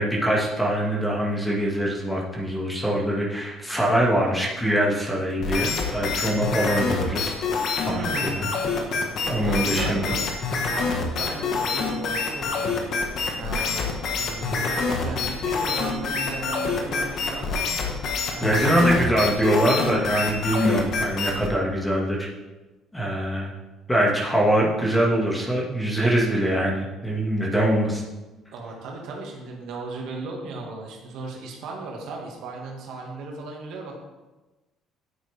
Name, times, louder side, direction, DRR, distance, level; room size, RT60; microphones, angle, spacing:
voice 1, 0.0-7.4 7.8-8.5 9.2-10.1 18.4-22.3 22.9-23.5 23.9-28.0, right 1 dB, 10° left, -2 dB, 2.1 m, -23 dB
sound 1, 5.4-21.5, left 4 dB, 60° left, 1.6 m, -26 dB
voice 2, 7.9-8.5 9.4-10.2 10.6-12.8 13.1-17.7 18.3-18.9 28.5-34.0, right 3 dB, 75° right, 0 dB, 2.0 m, -36 dB
9.4 x 8.2 x 3.6 m, 1.1 s
cardioid pair, 100°, 0 cm